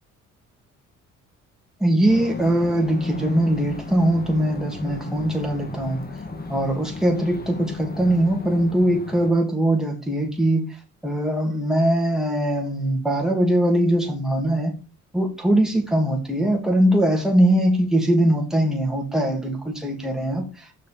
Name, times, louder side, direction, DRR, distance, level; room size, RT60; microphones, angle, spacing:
voice 1, 1.8-6.1 6.5-10.7 11.0-14.7 15.1-20.9, right 1 dB, ahead, 1 dB, 2.5 m, -21 dB
sound 1, 2.1-9.3, left 3 dB, 30° left, 1.8 m, -34 dB
6.6 x 5.2 x 5.1 m, 0.32 s
cardioid pair, 90°, 30 cm